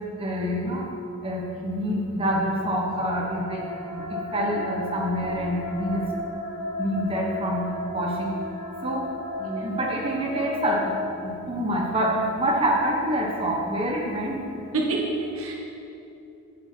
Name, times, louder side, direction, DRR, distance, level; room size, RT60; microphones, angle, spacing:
voice 1, 0.2-0.8 1.2-4.0 4.3-6.0 6.8-8.3 8.8-9.0 9.6-10.9 11.2-14.4, equal, 25° right, -2 dB, 1.1 m, -26 dB
sound 1, 2.8-11.8, left 1 dB, 75° left, 1.9 m, -34 dB
voice 2, 9.4-9.8 14.6-15.5, right 2 dB, 85° right, -2 dB, 1.8 m, -28 dB
9.8 x 8.7 x 4.5 m, 2.7 s
head